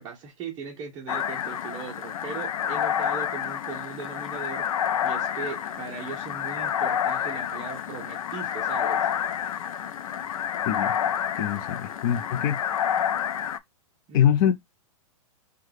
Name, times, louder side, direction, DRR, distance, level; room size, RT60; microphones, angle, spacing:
voice 1, 0.0-9.1 14.1-14.3, right 5 dB, 25° right, 0.7 m, -38 dB
sound 1, 1.1-13.6, left 9 dB, 80° left, 0.4 m, -29 dB
voice 2, 11.4-12.6 14.1-14.6, left 9 dB, 40° left, 0.6 m, -23 dB
3.4 x 2.3 x 3.2 m
hypercardioid pair, 150°, 17 cm